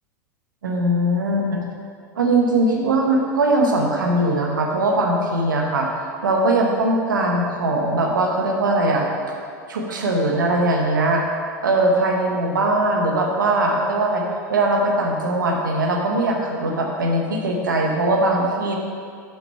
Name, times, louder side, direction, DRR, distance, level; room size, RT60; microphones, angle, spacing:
voice 1, 0.6-1.6 2.2-9.1 9.7-11.2 11.6-14.2 14.5-18.7, right 2 dB, 80° right, 0 dB, 1.1 m, -20 dB
5.8 x 5.7 x 4.7 m, 2.3 s
hypercardioid pair, 95°, 10 cm